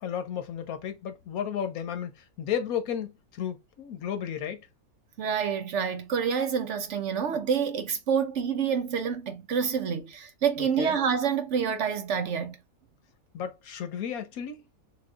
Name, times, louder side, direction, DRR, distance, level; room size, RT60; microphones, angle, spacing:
voice 1, 0.0-4.7 10.8-11.0 13.3-14.7, left 8 dB, 80° left, 1.3 m, -33 dB
voice 2, 5.2-12.6, right 7 dB, 65° right, 0.8 m, -27 dB
6.0 x 2.4 x 2.3 m
omnidirectional pair, 1.5 m